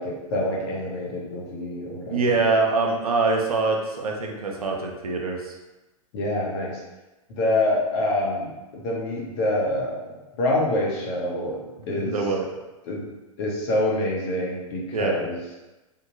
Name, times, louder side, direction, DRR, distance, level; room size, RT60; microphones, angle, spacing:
voice 1, 0.0-2.2 6.1-6.8 7.3-11.6 11.9-12.2 12.8-13.1 13.4-15.4, left 1 dB, 50° left, -3 dB, 1.1 m, -26 dB
voice 2, 2.1-5.5 11.9-12.5 14.9-15.2, right 3 dB, 80° right, 1 dB, 0.7 m, -24 dB
3.6 x 2.2 x 3.0 m, 1.1 s
figure-of-eight pair, 105°, 18 cm